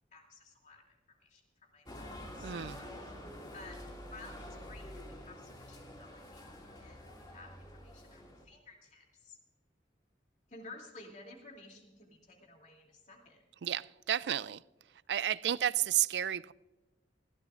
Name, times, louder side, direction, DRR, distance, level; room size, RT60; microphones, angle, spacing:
voice 1, 0.1-2.8 3.5-7.0 7.3-9.4 10.5-13.4, left 3 dB, 40° left, 2.8 m, -54 dB
sound 1, 1.9-8.4, left 1 dB, 25° left, 2.2 m, -48 dB
voice 2, 2.4-2.8 13.6-14.6 15.1-16.5, right 11 dB, 70° right, 0.4 m, -32 dB
21.0 x 16.0 x 2.5 m
head